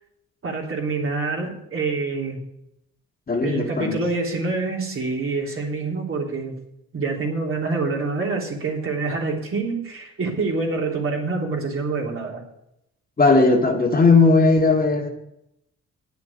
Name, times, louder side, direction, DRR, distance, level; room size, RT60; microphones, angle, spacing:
voice 1, 0.4-2.4 3.4-6.5 6.9-12.4, right 3 dB, 45° right, 0 dB, 3.3 m, -26 dB
voice 2, 3.3-4.0 13.2-15.1, left 3 dB, 30° left, 2 dB, 2.0 m, -17 dB
9.5 x 6.9 x 8.4 m, 0.80 s
cardioid pair, 90°, 30 cm